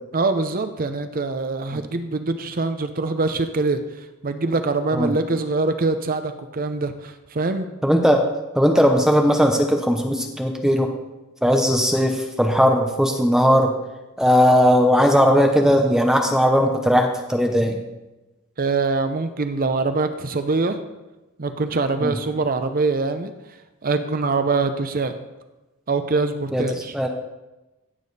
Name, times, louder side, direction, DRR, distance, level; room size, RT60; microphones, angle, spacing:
voice 1, 0.1-7.7 18.6-20.8 21.4-23.3 23.8-25.1 25.9-26.9, right 3 dB, 40° right, 9 dB, 0.7 m, -24 dB
voice 2, 7.8-8.3 8.5-10.9 11.4-13.7 14.2-17.8 22.0-22.1 26.5-26.6 26.9-27.1, equal, 5° right, 3 dB, 0.8 m, -18 dB
16.0 x 7.1 x 4.1 m, 1.0 s
head